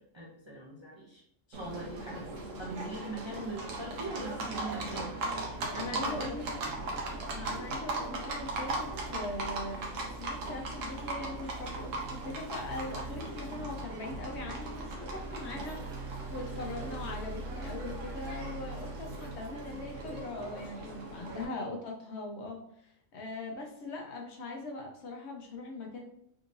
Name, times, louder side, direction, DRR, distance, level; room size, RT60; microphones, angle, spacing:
voice 1, 0.1-1.2 1.5-5.2 5.8-6.4 8.0-8.1 21.5-21.7, right 2 dB, 35° right, -4 dB, 0.4 m, -41 dB
Livestock farm animals working animals, 1.5-21.4, right 2 dB, 75° right, 1.1 m, -38 dB
voice 2, 5.7-6.4 7.3-9.8 10.2-26.1, left 2 dB, 65° left, 1 dB, 0.9 m, -41 dB
3.7 x 2.7 x 2.5 m, 0.71 s
omnidirectional pair, 1.3 m